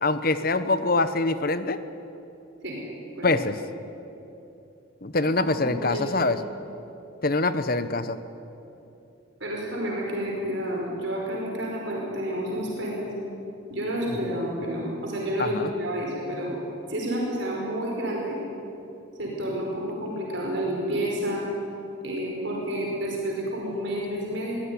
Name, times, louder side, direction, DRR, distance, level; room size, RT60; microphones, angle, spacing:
voice 1, 0.0-1.8 3.2-3.6 5.0-6.4 7.2-8.2 15.4-15.7, left 2 dB, 45° left, 12 dB, 1.0 m, -24 dB
voice 2, 5.4-6.3 9.4-13.1 13.7-16.5 16.9-18.4 19.2-21.5 22.0-24.6, equal, 60° right, -2 dB, 5.1 m, -30 dB
24.5 x 16.5 x 9.9 m, 2.9 s
head